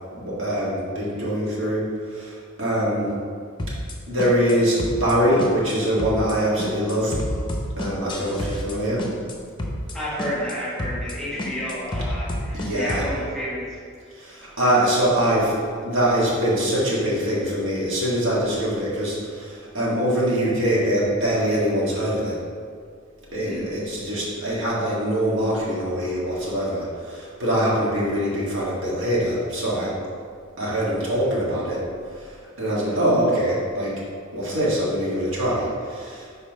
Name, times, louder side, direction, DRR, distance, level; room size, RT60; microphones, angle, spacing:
voice 1, 0.1-2.3 2.6-3.1 4.1-7.2 7.8-9.0 12.5-13.0 14.2-15.6 15.8-22.4 23.3-29.9 30.6-31.8 32.6-33.9 34.3-36.2, equal, 60° right, -6 dB, 1.7 m, -23 dB
sound 1, 3.6-4.5 4.8-5.1 5.4-5.7 6.0-6.3 6.6-8.7 9.0-9.3 9.6-9.9 10.2-10.5 10.8-11.1 11.4-13.1, left 1 dB, 20° left, 0.7 m, -29 dB
voice 2, 8.0-8.3 9.9-13.8 23.3-23.6 32.9-33.1, equal, ahead, -8 dB, 1.6 m, -31 dB
5.4 x 4.4 x 5.3 m, 2.1 s
head